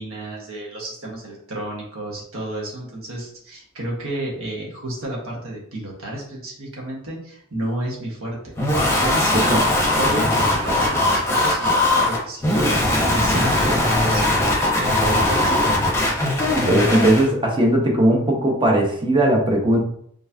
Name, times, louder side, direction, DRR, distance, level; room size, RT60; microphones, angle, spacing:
voice 1, 0.0-15.9, right 1 dB, 65° right, -2 dB, 1.4 m, -31 dB
sound 1, 8.6-17.3, left 1 dB, 10° left, 0.9 m, -19 dB
voice 2, 16.7-19.8, right 1 dB, 20° right, 0 dB, 0.9 m, -18 dB
4.7 x 3.3 x 2.7 m, 0.65 s
head